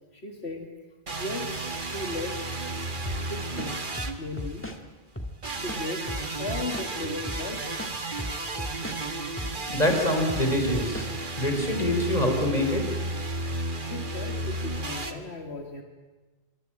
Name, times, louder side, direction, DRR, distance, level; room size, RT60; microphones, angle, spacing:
voice 1, 0.1-0.7 1.2-2.5 3.3-3.8 4.2-4.7 5.6-6.1 6.4-7.7 13.8-15.8, left 2 dB, 85° left, 3 dB, 2.6 m, -36 dB
sound 1, 1.1-4.8 5.4-15.1, right 2 dB, 50° right, 2.1 m, -33 dB
sound 2, 3.1-3.2 3.6-4.8 5.2-5.3 5.7-6.9 7.3-7.4 7.8-9.0 9.4-9.6 9.9-11.1, left 1 dB, 10° left, 2.3 m, -35 dB
voice 2, 9.7-11.1 11.4-12.8, left 1 dB, 40° left, 4 dB, 4.6 m, -25 dB
25.5 x 25.0 x 8.9 m, 1.2 s
omnidirectional pair, 1.1 m